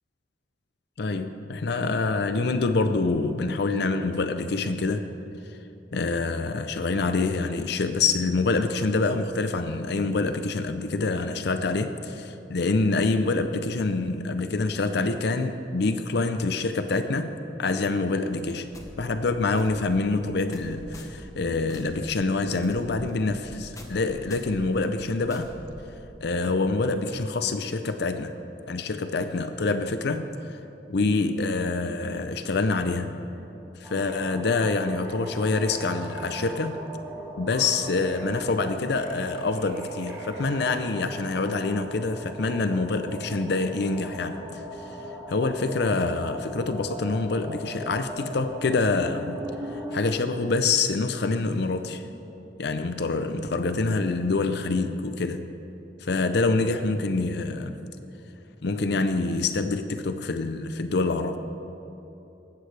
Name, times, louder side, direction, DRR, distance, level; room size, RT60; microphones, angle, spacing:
voice 1, 1.0-5.1 5.9-17.3 17.6-18.7 19.0-25.5 26.2-28.3 28.7-30.6 30.9-33.1 33.8-36.8 37.4-44.6 45.3-49.4 49.7-52.0 52.6-55.5 56.0-57.8 58.6-61.4, left 3 dB, 60° left, 9 dB, 0.6 m, -26 dB
sound 1, 18.7-26.4, left 1 dB, 20° left, 1.1 m, -45 dB
sound 2, 33.8-50.0, right 1 dB, 10° right, 1.6 m, -39 dB
sound 3, 34.9-36.9 37.4-41.3, right 2 dB, 55° right, 1.9 m, -45 dB
19.0 x 14.5 x 3.3 m, 3.0 s
head